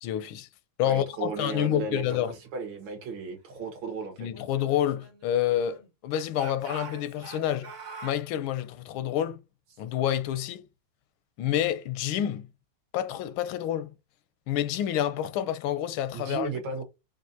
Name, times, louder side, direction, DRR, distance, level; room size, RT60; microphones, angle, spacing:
voice 1, 0.0-0.5 0.8-2.3 4.2-7.7 8.0-9.4 9.8-10.6 11.4-12.5 12.9-13.9 14.5-16.5, left 11 dB, 85° left, 1.4 m, -28 dB
voice 2, 0.8-4.3 16.1-16.8, right 4 dB, 75° right, 2.1 m, -35 dB
Speech / Shout, 4.3-5.9 6.3-8.2, right 4 dB, 45° right, 1.3 m, -44 dB
5.7 x 2.6 x 2.7 m
omnidirectional pair, 2.2 m